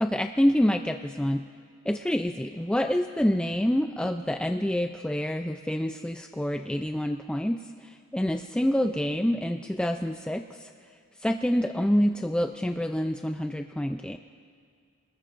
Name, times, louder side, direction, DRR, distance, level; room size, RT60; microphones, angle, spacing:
voice 1, 0.0-1.4 1.9-7.6 8.1-10.7 11.2-14.2, equal, 5° left, 5 dB, 0.3 m, -27 dB
26.0 x 21.0 x 2.5 m, 2.1 s
head